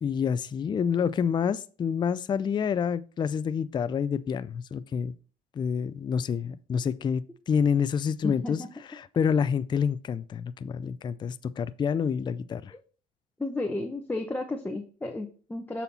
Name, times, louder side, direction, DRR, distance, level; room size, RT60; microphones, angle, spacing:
voice 1, 0.0-5.1 5.6-8.6 8.9-12.7, left 7 dB, 25° left, 0.3 m, -28 dB
voice 2, 8.2-8.7 12.7-12.8 13.4-15.8, left 2 dB, 10° left, 0.8 m, -33 dB
7.0 x 4.2 x 4.1 m
cardioid pair, 110°, 17 cm